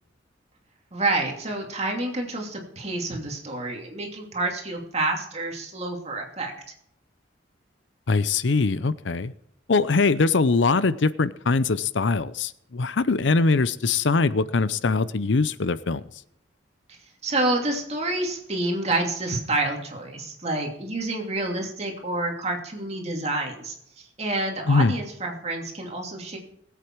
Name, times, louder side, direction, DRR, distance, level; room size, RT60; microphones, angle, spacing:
voice 1, 0.9-6.5 17.2-26.4, right 2 dB, 35° right, 1 dB, 2.7 m, -28 dB
voice 2, 8.1-9.3 9.7-16.0 24.7-24.9, left 4 dB, 75° left, 16 dB, 0.6 m, -22 dB
19.5 x 8.4 x 4.6 m, 0.73 s
head